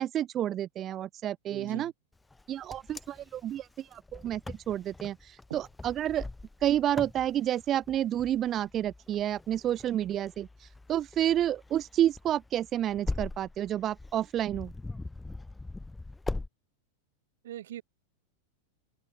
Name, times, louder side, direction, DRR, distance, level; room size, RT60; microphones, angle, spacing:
voice 1, 0.0-1.9 2.5-6.3 6.6-14.7, right 11 dB, 30° right, 1.0 m, -30 dB
voice 2, 1.5-1.9 5.5-5.6 17.4-17.8, right 12 dB, 60° right, 4.9 m, -40 dB
Wind, 2.3-16.5, left 2 dB, 10° left, 6.9 m, -42 dB
open air
figure-of-eight pair, 90°, 0 cm